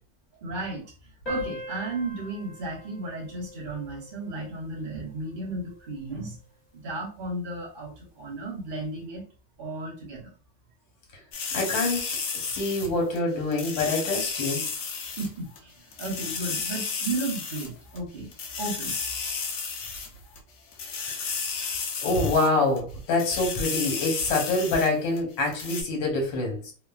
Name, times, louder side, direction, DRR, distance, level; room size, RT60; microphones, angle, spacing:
voice 1, 0.3-0.8 1.3-6.4 6.7-9.2 9.6-10.3 15.2-18.3 18.6-19.0, right 2 dB, 75° right, 0.4 m, -34 dB
sound 1, 1.3-6.2, equal, 40° left, 0.6 m, -41 dB
sound 2, 11.3-13.2 13.5-15.3 15.6-15.7 15.9-17.7 18.0-18.1 18.3-20.4 20.7-22.5 22.8-22.9 23.1-24.9 25.2-25.3 25.5-25.8, left 5 dB, 70° left, 1.2 m, -32 dB
voice 2, 11.5-12.0 12.3-14.6 21.2-21.3 22.0-26.7, left 2 dB, 90° left, 1.7 m, -26 dB
3.2 x 2.2 x 2.2 m
omnidirectional pair, 2.0 m